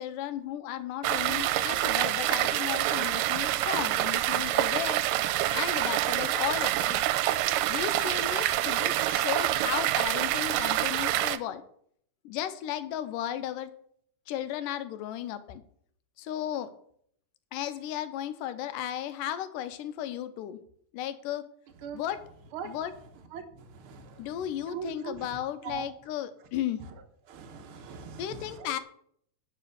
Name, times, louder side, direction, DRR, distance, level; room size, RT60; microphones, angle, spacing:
voice 1, 0.0-5.0 5.5-7.0 7.7-11.6 12.3-13.7 14.3-15.6 16.2-16.7 17.5-20.6 20.9-21.5 21.9-22.2 22.6-22.9 24.2-26.9 28.2-28.8, left 11 dB, 90° left, 11 dB, 2.3 m, -34 dB
sound 1, 1.0-11.4, right 14 dB, 85° right, 2.2 m, -27 dB
voice 2, 23.3-24.3 24.6-25.3 25.6-25.9 27.3-28.7, right 6 dB, 60° right, 4 dB, 1.5 m, -41 dB
10.0 x 4.9 x 6.8 m, 0.65 s
omnidirectional pair, 3.8 m